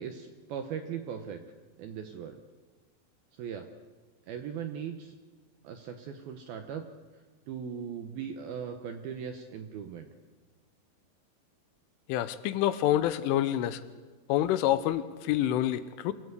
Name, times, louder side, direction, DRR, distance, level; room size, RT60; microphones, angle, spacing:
voice 1, 0.0-1.4 1.8-2.4 3.3-3.7 4.3-5.1 5.6-6.9 7.5-10.1, right 7 dB, 75° right, 6 dB, 2.3 m, -39 dB
voice 2, 12.1-13.8 14.3-16.1, left 12 dB, 85° left, 12 dB, 3.4 m, -27 dB
26.5 x 16.5 x 8.3 m, 1.3 s
omnidirectional pair, 5.6 m